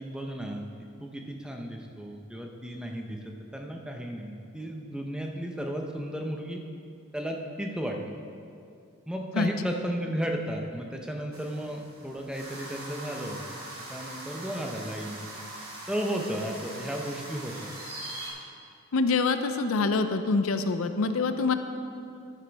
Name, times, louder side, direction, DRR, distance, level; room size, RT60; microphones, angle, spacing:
voice 1, 0.0-6.6 7.1-8.2 9.1-15.3 15.9-17.7, equal, 5° right, 2 dB, 0.7 m, -34 dB
sound 1, 11.3-18.3, right 1 dB, 85° right, 2.4 m, -42 dB
voice 2, 18.9-21.5, left 4 dB, 80° left, 9 dB, 0.5 m, -25 dB
11.0 x 10.0 x 3.5 m, 2.4 s
head